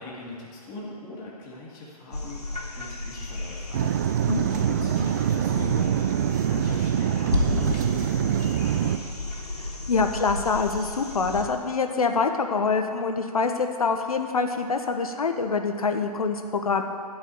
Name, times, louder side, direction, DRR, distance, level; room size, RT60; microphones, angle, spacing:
voice 1, 0.0-9.1, left 2 dB, 20° left, -5 dB, 2.7 m, -41 dB
sound 1, 2.1-11.5 13.5-13.6, left 2 dB, 80° left, 2.4 m, -32 dB
sound 2, 3.7-9.0, right 11 dB, 30° right, 0.4 m, -25 dB
voice 2, 9.6-16.8, left 4 dB, 65° left, 6 dB, 1.2 m, -25 dB
14.0 x 5.5 x 8.6 m, 2.3 s
figure-of-eight pair, 125°, 20 cm